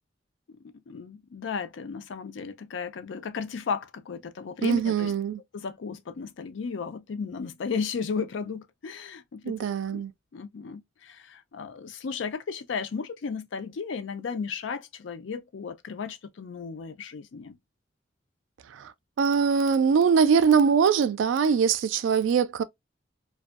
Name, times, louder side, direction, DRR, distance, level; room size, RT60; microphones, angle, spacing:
voice 1, 0.6-5.1 5.5-10.0 10.3-17.6, left 5 dB, 75° left, 0.4 m, -35 dB
voice 2, 4.6-5.4 9.4-10.1 18.8-18.9 19.2-22.6, right 6 dB, 85° right, 0.3 m, -22 dB
2.5 x 2.3 x 2.3 m
head